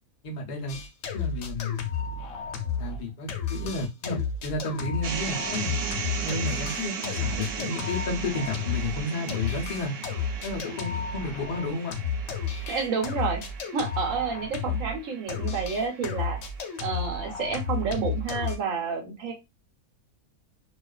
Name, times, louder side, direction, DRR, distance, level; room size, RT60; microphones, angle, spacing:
voice 1, 0.2-0.8 1.1-1.8 2.8-5.7 6.2-9.9 10.4-11.9, left 2 dB, 85° left, 0.4 m, -32 dB
sound 1, 0.7-3.0 3.3-15.0 15.3-18.6, left 5 dB, 65° left, 0.8 m, -32 dB
sound 2, 5.0-17.2, right 6 dB, 85° right, 1.1 m, -37 dB
voice 2, 12.7-13.4 13.7-16.4 16.8-19.3, right 5 dB, 65° right, 1.0 m, -29 dB
2.4 x 2.4 x 2.2 m
omnidirectional pair, 1.6 m